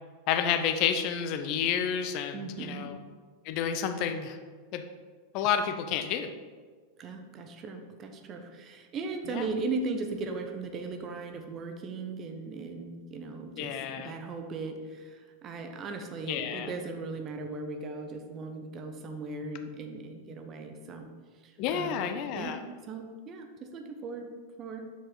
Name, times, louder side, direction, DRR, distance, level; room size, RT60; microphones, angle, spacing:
voice 1, 0.3-3.0 3.4-4.4 4.7-4.8 5.3-6.3 9.3-9.5 13.6-14.1 16.2-16.7 21.6-22.6, left 8 dB, 45° left, 8 dB, 0.5 m, -30 dB
voice 2, 2.3-2.9 7.0-21.1 21.4-22.6 22.9-24.3 24.6-24.8, right 3 dB, 30° right, 5 dB, 0.9 m, -38 dB
7.2 x 6.2 x 3.9 m, 1.5 s
figure-of-eight pair, 90°, 0 cm